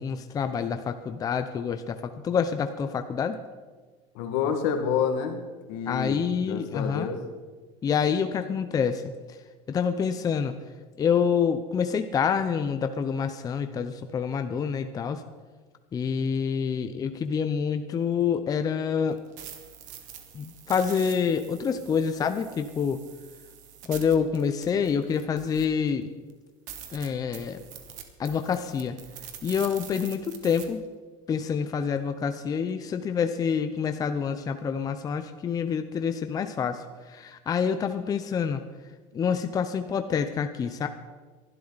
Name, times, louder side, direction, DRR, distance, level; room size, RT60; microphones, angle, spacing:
voice 1, 0.0-3.4 5.9-7.1 7.8-9.0 9.7-10.5 11.0-15.2 15.9-19.2 20.3-23.0 23.9-26.1 26.9-27.6 28.2-29.0 29.4-30.8 31.3-38.6 39.1-40.9, left 6 dB, 25° left, 8 dB, 0.7 m, -27 dB
voice 2, 4.1-5.4 5.7-7.2, left 7 dB, 75° left, 5 dB, 2.0 m, -28 dB
sound 1, 19.1-25.9 26.3-26.4 26.7-30.6, right 9 dB, 60° right, 1.8 m, -45 dB
22.0 x 12.0 x 4.1 m, 1.4 s
cardioid pair, 150°, 15 cm